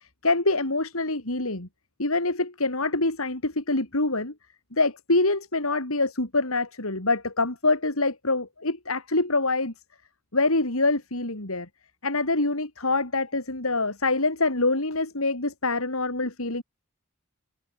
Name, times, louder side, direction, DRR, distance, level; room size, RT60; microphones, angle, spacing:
voice 1, 0.0-1.7 2.0-4.3 4.7-9.7 10.3-11.7 12.0-16.6, left 2 dB, 80° left, 3.9 m, -25 dB
head